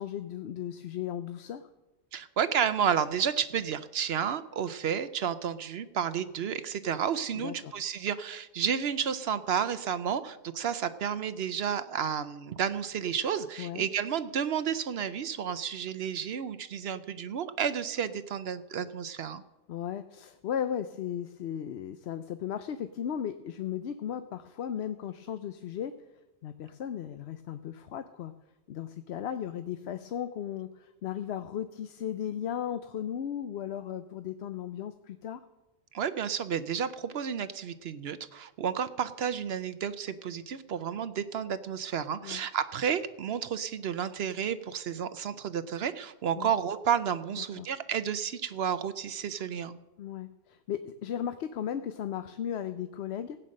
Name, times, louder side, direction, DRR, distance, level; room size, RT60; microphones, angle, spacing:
voice 1, 0.0-1.6 7.3-7.7 13.6-13.9 19.7-25.9 26.4-28.3 28.7-35.4 42.2-42.4 46.3-46.5 47.4-47.7 50.0-53.4, left 9 dB, 75° left, 10 dB, 0.9 m, -36 dB
voice 2, 2.1-19.4 35.9-49.8, right 8 dB, 70° right, 13 dB, 0.9 m, -31 dB
16.0 x 9.0 x 6.4 m, 1.0 s
omnidirectional pair, 1.1 m